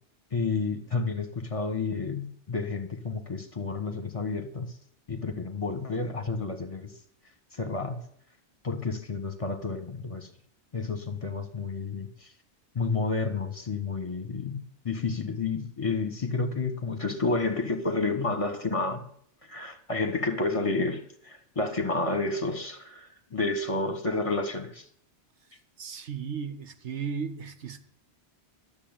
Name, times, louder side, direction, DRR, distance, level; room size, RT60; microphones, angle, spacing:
voice 1, 0.3-4.8 5.1-6.9 7.5-8.0 8.6-10.3 10.7-12.3 12.7-19.1 19.4-24.9, left 3 dB, 30° left, 1.2 m, -30 dB
voice 2, 25.5-27.8, right 6 dB, 80° right, 1.3 m, -36 dB
12.5 x 7.1 x 8.8 m
omnidirectional pair, 1.1 m